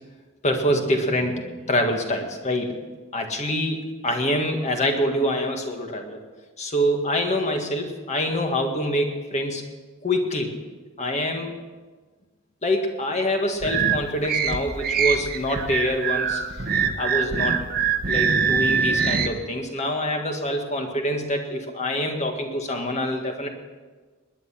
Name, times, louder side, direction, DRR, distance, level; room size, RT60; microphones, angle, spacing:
voice 1, 0.4-2.8 3.1-6.2 6.6-9.7 10.0-10.6 11.0-11.5 12.6-16.4 17.0-17.6 18.1-23.5, left 1 dB, 35° left, 4 dB, 1.8 m, -25 dB
sound 1, 13.6-19.3, right 6 dB, 45° right, 1.1 m, -23 dB
20.0 x 10.0 x 5.9 m, 1.3 s
head